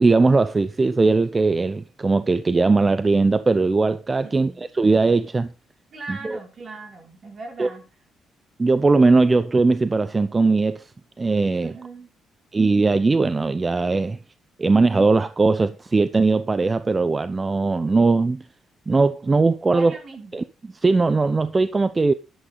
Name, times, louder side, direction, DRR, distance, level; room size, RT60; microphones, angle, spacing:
voice 1, 0.0-5.5 6.1-6.4 7.6-7.7 8.6-10.9 11.2-11.7 12.5-14.2 14.6-18.4 18.9-19.9 20.3-20.4 20.8-22.1, right 3 dB, 25° right, 0.7 m, -19 dB
voice 2, 4.2-4.7 5.9-7.9 11.6-12.1 19.7-20.4, right 3 dB, 45° right, 5.7 m, -39 dB
11.5 x 11.5 x 4.0 m
cardioid pair, 90°, 0 cm